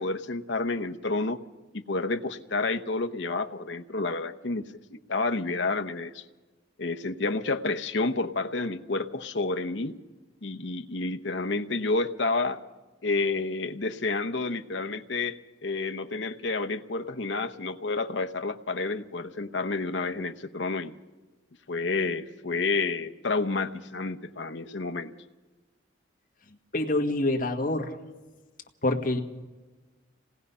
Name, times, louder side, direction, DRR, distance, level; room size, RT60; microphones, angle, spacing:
voice 1, 0.0-1.4 1.9-4.6 4.9-6.2 6.8-10.0 10.4-12.6 13.0-20.9 21.7-25.1, left 3 dB, 65° left, 10 dB, 0.9 m, -30 dB
voice 2, 26.7-28.0 28.8-29.2, left 2 dB, 45° left, 3 dB, 1.6 m, -26 dB
26.5 x 19.0 x 5.6 m, 1.2 s
head